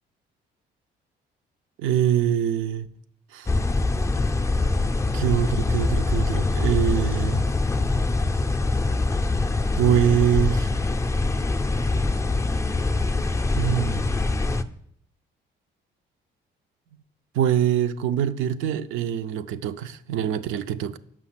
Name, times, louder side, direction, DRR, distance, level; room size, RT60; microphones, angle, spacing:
voice 1, 1.8-2.9 3.3-3.5 5.1-7.4 9.8-10.7 13.5-14.1 17.3-21.0, right 10 dB, 90° right, 0.5 m, -24 dB
sound 1, 3.5-14.6, left 3 dB, 15° left, 0.4 m, -24 dB
6.3 x 5.7 x 5.7 m
cardioid pair, 90°, 20 cm